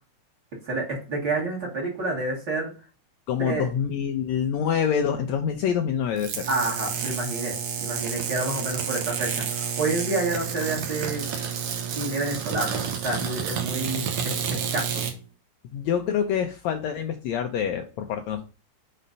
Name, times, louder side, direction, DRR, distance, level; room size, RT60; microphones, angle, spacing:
voice 1, 0.6-2.7 3.4-3.7 6.5-11.2 12.0-15.0, right 2 dB, 40° right, -3 dB, 2.0 m, -29 dB
voice 2, 3.3-6.5 15.7-18.4, left 8 dB, 80° left, 4 dB, 1.7 m, -26 dB
sound 1, 6.2-15.1, right 7 dB, 65° right, 1.4 m, -30 dB
5.5 x 4.2 x 5.2 m, 0.34 s
omnidirectional pair, 3.6 m